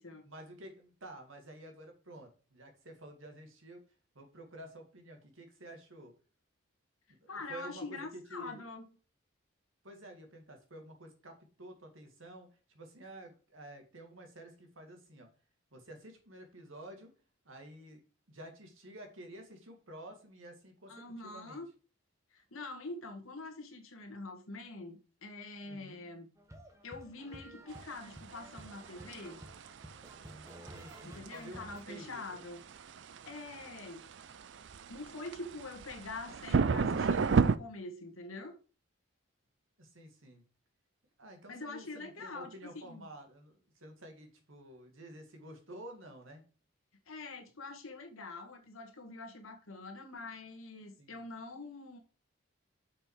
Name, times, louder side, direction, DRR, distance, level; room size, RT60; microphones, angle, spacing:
voice 1, 0.2-3.8 4.1-6.1 7.1-8.6 9.8-15.3 15.7-17.1 17.4-18.0 18.3-21.6 25.6-26.0 30.7-32.4 39.8-40.4 41.2-46.4 51.0-51.2, right 1 dB, 75° right, 2.2 m, -51 dB
voice 2, 7.3-8.8 20.9-21.7 22.3-26.3 26.8-29.4 31.0-32.6 33.3-34.1 34.9-38.6 41.5-43.1 47.1-52.0, left 3 dB, 85° left, 1.7 m, -45 dB
sound 1, 26.4-31.8, right 1 dB, 15° right, 1.1 m, -52 dB
sound 2, 27.8-37.6, right 5 dB, 60° right, 0.4 m, -33 dB
6.6 x 5.4 x 4.9 m
head